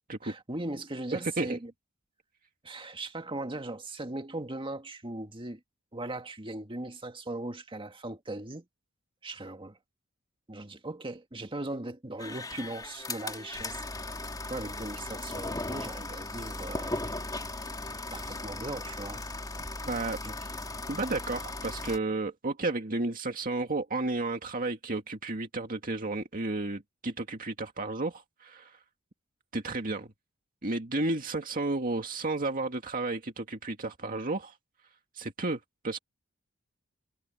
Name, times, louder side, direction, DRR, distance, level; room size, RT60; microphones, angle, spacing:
voice 1, 0.2-1.7 2.6-5.6 5.9-8.7 9.2-9.8 10.5-14.2 14.5-17.1 18.1-19.3 20.2-20.6, right 2 dB, 25° right, 1.9 m, -39 dB
sound 1, 12.2-22.0, left 2 dB, 20° left, 3.1 m, -37 dB
voice 2, 19.9-20.2 20.9-28.8 29.5-30.1 30.6-34.6 35.2-36.0, right 2 dB, 40° right, 2.1 m, -32 dB
head